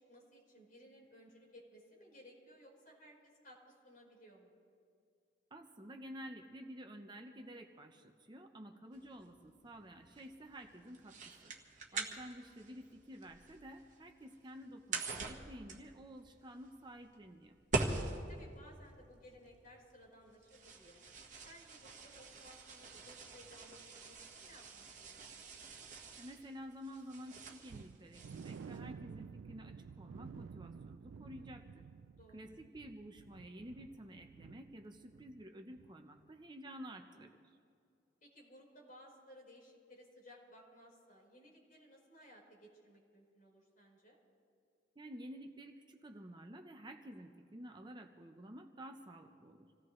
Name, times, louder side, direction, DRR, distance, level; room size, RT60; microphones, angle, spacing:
voice 1, 0.0-4.5 11.9-12.2 18.3-21.0 21.4-25.5 32.2-32.5 38.2-44.2, equal, 50° left, -3 dB, 4.6 m, -59 dB
voice 2, 5.5-11.5 11.9-17.6 26.2-31.9 32.3-37.5 45.0-49.7, equal, 25° right, 4 dB, 0.8 m, -51 dB
sound 1, 8.9-28.8, right 3 dB, 45° right, 1.5 m, -45 dB
sound 2, 27.7-35.5 35.7-35.9 36.3-36.4, right 6 dB, 85° right, 0.3 m, -52 dB
27.0 x 17.0 x 3.2 m, 2.3 s
head